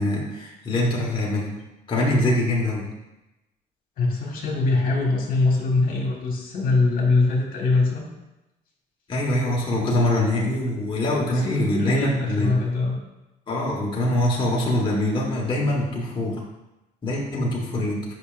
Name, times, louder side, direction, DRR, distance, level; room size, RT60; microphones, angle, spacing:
voice 1, 0.0-1.6 1.9-2.9 9.1-12.5 13.5-16.4 17.0-18.0, left 1 dB, 30° left, -4 dB, 1.4 m, -24 dB
voice 2, 4.0-8.1 11.3-13.0, left 3 dB, 55° left, -2 dB, 1.7 m, -23 dB
8.2 x 5.6 x 2.5 m, 0.98 s
cardioid pair, 110°, 17 cm